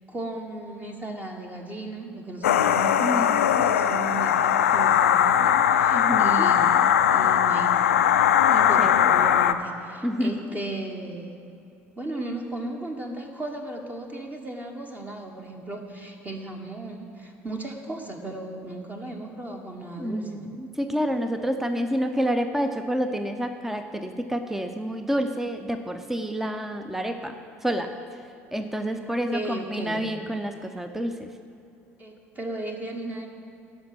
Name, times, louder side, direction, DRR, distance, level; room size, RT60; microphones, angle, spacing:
voice 1, 0.1-6.8 7.1-11.4 12.0-20.5 29.0-30.1 32.0-33.3, right 2 dB, 20° right, 2 dB, 1.3 m, -36 dB
sound 1, 2.4-9.5, left 9 dB, 85° left, 0.4 m, -20 dB
voice 2, 3.0-3.6 5.9-6.5 8.5-9.0 10.0-10.6 20.0-28.2 28.5-31.3, equal, 5° right, 7 dB, 0.7 m, -29 dB
12.0 x 5.2 x 7.5 m, 2.6 s
hypercardioid pair, 65°, 7 cm